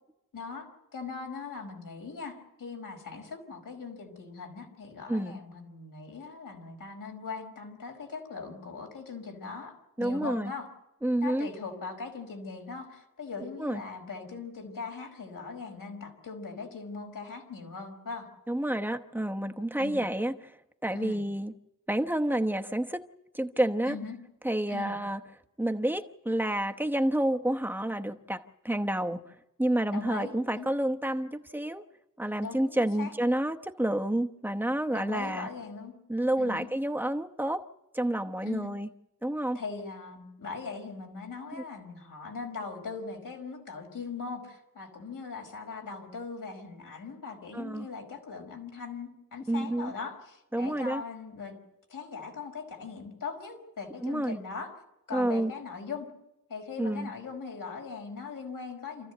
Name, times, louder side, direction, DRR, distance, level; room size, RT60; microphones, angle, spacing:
voice 1, 0.3-10.7 11.2-18.3 19.8-20.0 20.9-21.2 23.8-24.2 24.7-25.0 29.9-30.7 32.4-33.1 34.9-35.9 36.4-36.7 38.4-38.8 39.5-51.6 51.9-54.7 55.1-56.1 56.5-59.1, left 4 dB, 80° left, 3 dB, 5.1 m, -40 dB
voice 2, 5.1-5.4 10.0-10.5 11.0-11.5 13.6-13.8 18.5-20.3 20.8-21.5 21.9-23.0 23.3-24.0 24.4-25.2 25.6-29.3 29.6-31.8 32.2-35.5 36.1-37.6 37.9-38.9 39.2-39.6 47.5-47.9 49.5-49.9 50.5-51.0 54.0-54.4 55.1-55.5 56.8-57.1, right 1 dB, 5° right, 5 dB, 0.9 m, -29 dB
28.0 x 15.0 x 7.9 m, 0.90 s
wide cardioid pair, 175°, 33 cm